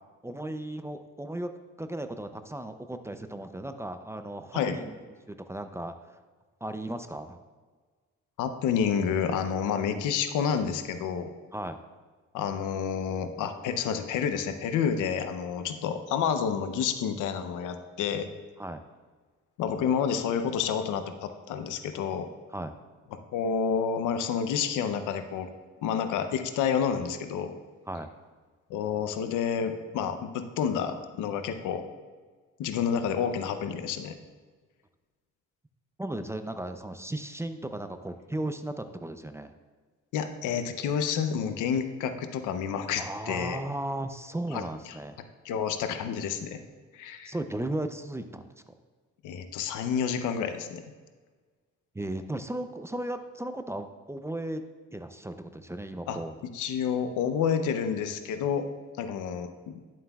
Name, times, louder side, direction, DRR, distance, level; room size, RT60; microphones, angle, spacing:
voice 1, 0.2-1.5 1.8-5.0 5.3-5.9 6.6-7.4 11.5-11.8 15.6-15.7 18.6-18.8 22.5-22.7 27.9-28.1 36.0-39.5 43.0-45.2 47.3-48.4 51.9-54.6 54.9-56.4, right 1 dB, 10° right, 8 dB, 0.4 m, -35 dB
voice 2, 8.4-11.3 12.3-18.3 19.6-22.3 23.3-25.5 25.8-27.5 28.7-31.9 32.6-34.1 40.1-43.6 44.5-45.0 45.4-46.6 46.9-47.3 49.2-50.8 56.1-56.2 56.5-58.7 59.0-59.7, left 7 dB, 90° left, 8 dB, 0.7 m, -29 dB
11.0 x 7.4 x 2.3 m, 1.4 s
cardioid pair, 90°, 30 cm